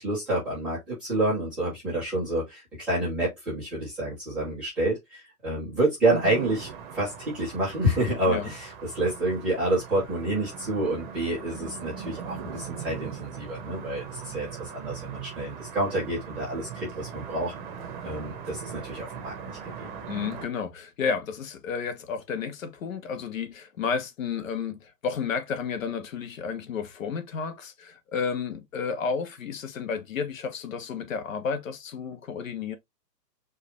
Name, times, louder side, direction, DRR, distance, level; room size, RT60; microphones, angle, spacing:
voice 1, 0.0-6.7 6.9-17.5 18.0-19.9, right 1 dB, ahead, 0.5 m, -28 dB
sound 1, 6.1-20.5, right 7 dB, 30° right, 0.9 m, -40 dB
voice 2, 20.1-32.8, left 6 dB, 50° left, 0.9 m, -32 dB
4.7 x 2.3 x 3.0 m
hypercardioid pair, 145°, 50 cm